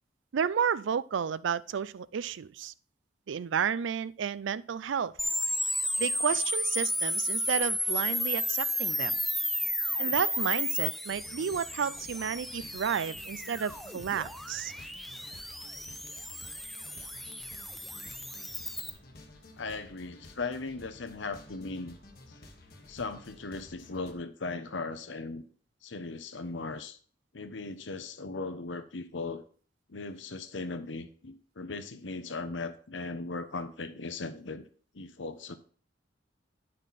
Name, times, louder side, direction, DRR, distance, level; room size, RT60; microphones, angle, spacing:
voice 1, 0.3-2.7 3.3-5.1 6.0-9.2 10.0-14.7, right 7 dB, 90° right, 0.4 m, -31 dB
sound 1, 5.2-18.9, equal, ahead, 0.6 m, -33 dB
sound 2, 11.1-24.1, left 2 dB, 55° left, 1.5 m, -53 dB
voice 2, 19.6-22.0 22.3-22.4 22.9-25.4 25.8-27.0 27.3-29.4 29.9-34.6 34.9-35.5, left 3 dB, 85° left, 1.0 m, -38 dB
9.4 x 6.6 x 4.2 m
head